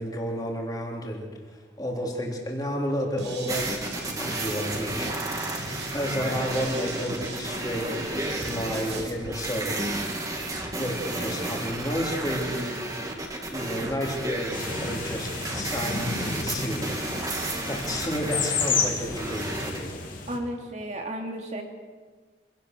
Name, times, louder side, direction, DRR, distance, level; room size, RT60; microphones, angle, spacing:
voice 1, 0.0-5.1 5.9-9.8 10.8-12.7 13.5-16.9 17.7-19.9, equal, 20° left, -1 dB, 3.6 m, -31 dB
sound 1, 3.2-9.1, right 2 dB, 80° right, 5.6 m, -38 dB
sound 2, 3.5-19.8, right 2 dB, 20° right, 2.5 m, -32 dB
sound 3, 14.5-20.4, left 5 dB, 50° left, 3.3 m, -31 dB
voice 2, 20.3-21.6, right 1 dB, 40° right, 2 dB, 2.9 m, -33 dB
26.0 x 17.5 x 6.9 m, 1.4 s
head